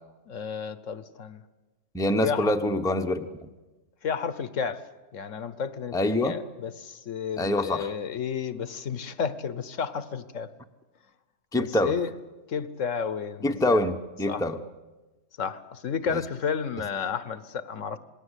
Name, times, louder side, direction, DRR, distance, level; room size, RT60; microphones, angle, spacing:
voice 1, 0.3-1.4 2.2-2.5 4.0-4.8 5.1-6.0 6.2-10.5 11.6-12.1 12.5-13.8 14.3-14.4 15.4-18.0, left 6 dB, 65° left, 14 dB, 1.3 m, -32 dB
voice 2, 1.9-3.5 5.9-6.4 7.4-7.9 11.5-11.9 13.4-14.6 16.1-16.2, left 1 dB, 5° left, 6 dB, 0.9 m, -25 dB
27.5 x 20.0 x 8.2 m, 1.2 s
omnidirectional pair, 1.4 m